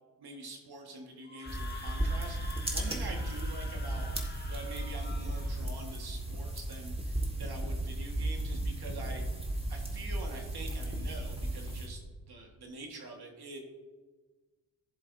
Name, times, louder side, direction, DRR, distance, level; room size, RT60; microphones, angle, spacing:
voice 1, 0.2-4.1 4.4-9.2 9.7-12.0 12.3-13.6, right 2 dB, 55° right, 2 dB, 1.8 m, -45 dB
Screaming, 1.2-5.6, left 3 dB, 20° left, 1.6 m, -48 dB
sound 1, 1.5-11.9, right 1 dB, 10° right, 2.1 m, -35 dB
15.0 x 7.3 x 2.7 m, 1.4 s
hypercardioid pair, 45°, 46 cm